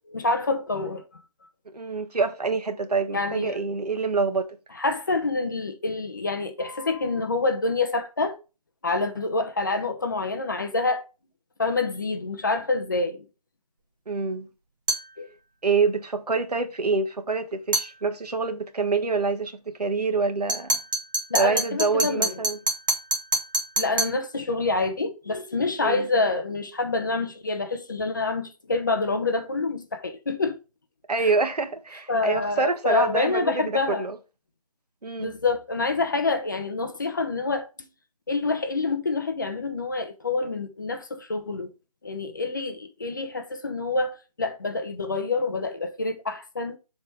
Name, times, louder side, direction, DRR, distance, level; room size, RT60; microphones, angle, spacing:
voice 1, 0.1-1.0 3.1-3.6 4.8-8.4 8.8-11.0 11.6-13.2 15.2-15.3 21.3-22.4 23.8-30.6 31.2-31.3 32.1-34.1 35.2-37.7 38.3-41.7 42.0-46.8, left 3 dB, 30° left, 0.7 m, -27 dB
voice 2, 1.7-4.6 14.1-14.5 15.6-20.8 21.3-22.6 25.8-26.1 31.1-34.2 35.0-35.3, right 4 dB, 80° right, 1.4 m, -26 dB
sound 1, 14.9-15.1 17.7-17.9 20.5-24.2, right 2 dB, 30° right, 1.3 m, -27 dB
7.4 x 3.5 x 4.6 m
figure-of-eight pair, 170°, 20 cm